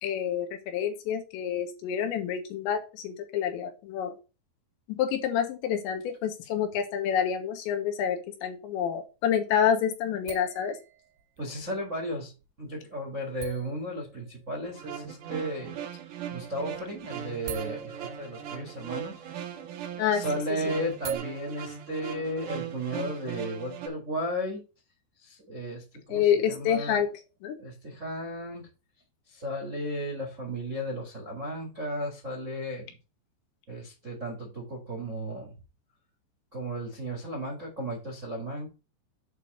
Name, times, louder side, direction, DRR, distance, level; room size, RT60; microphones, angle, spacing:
voice 1, 0.0-4.1 4.9-10.8 20.0-20.2 26.1-27.1 27.4-27.6, left 8 dB, 85° left, 5 dB, 3.4 m, -28 dB
sound 1, 7.7-7.8 10.3-11.6 12.4-12.5 13.4-15.3 16.6-16.8 17.0-19.2 20.9-21.2, right 7 dB, 90° right, 3.7 m, -41 dB
voice 2, 11.4-12.3 12.6-15.7 16.3-19.2 20.1-24.6 25.2-27.0 27.6-28.7 29.3-32.9 33.7-35.5 36.5-38.7, equal, 35° right, 0 dB, 1.2 m, -34 dB
sound 2, 14.6-23.9, right 9 dB, 70° right, 2.0 m, -39 dB
8.3 x 3.3 x 6.5 m, 0.31 s
omnidirectional pair, 5.1 m